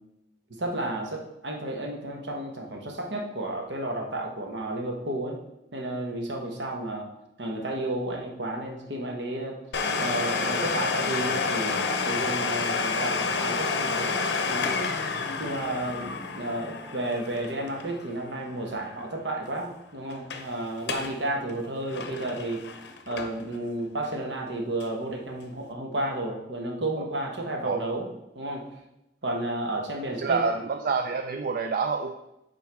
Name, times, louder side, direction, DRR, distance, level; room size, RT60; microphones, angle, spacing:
voice 1, 0.6-5.4 5.7-7.1 7.4-9.6 10.0-14.2 14.5-14.7 15.4-22.6 23.1-28.1 28.3-28.7 29.2-30.4, right 1 dB, 70° right, 1 dB, 1.2 m, -32 dB
Domestic sounds home sounds, 9.7-19.2 19.4-19.5 20.1-20.5 20.8-21.2 21.5-23.6 24.0-24.1 24.8-24.9, left 4 dB, 65° left, 0.6 m, -29 dB
voice 2, 30.2-32.1, right 4 dB, 50° right, 6 dB, 0.4 m, -27 dB
7.7 x 4.5 x 3.5 m, 0.89 s
head